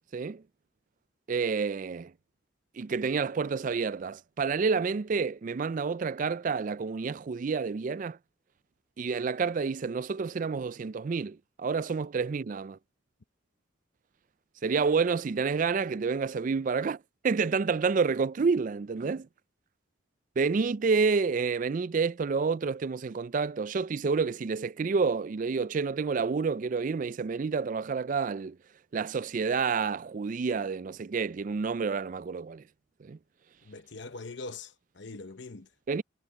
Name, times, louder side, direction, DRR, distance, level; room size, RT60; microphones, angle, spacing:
voice 1, 0.1-0.4 1.3-2.1 2.7-8.2 9.0-12.8 14.6-19.3 20.4-28.6 28.9-32.6 33.0-33.2 35.9-36.0, right 5 dB, 40° right, 0.4 m, -29 dB
voice 2, 33.6-35.7, left 3 dB, 60° left, 0.9 m, -42 dB
head